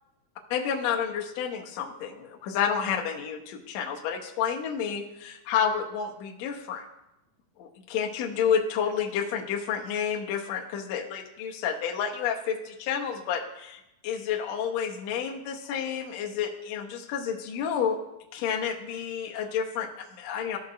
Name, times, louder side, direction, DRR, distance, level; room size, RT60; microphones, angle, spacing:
voice 1, 0.5-6.8 7.6-18.0 18.3-20.6, left 7 dB, 85° left, 1 dB, 1.5 m, -30 dB
14.0 x 6.5 x 2.4 m, 0.90 s
omnidirectional pair, 4.2 m